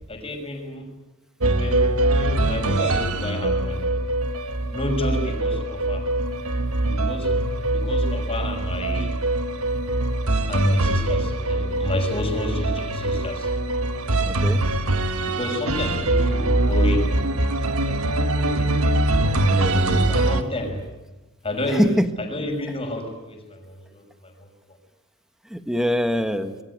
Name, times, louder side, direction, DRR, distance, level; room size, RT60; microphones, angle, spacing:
voice 1, 0.1-0.9 1.5-1.9 2.2-3.8 4.7-6.1 6.8-7.4 7.7-9.1 10.5-13.5 15.2-17.5 17.8-18.7 19.6-20.9 21.4-21.9 22.2-24.5, left 1 dB, 25° left, 4 dB, 5.8 m, -30 dB
sound 1, 1.4-20.4, right 2 dB, 70° right, 1.7 m, -23 dB
voice 2, 14.3-14.6 19.5-20.1 21.7-22.1 25.5-26.6, equal, ahead, 8 dB, 1.6 m, -24 dB
26.0 x 22.0 x 9.7 m, 1.1 s
head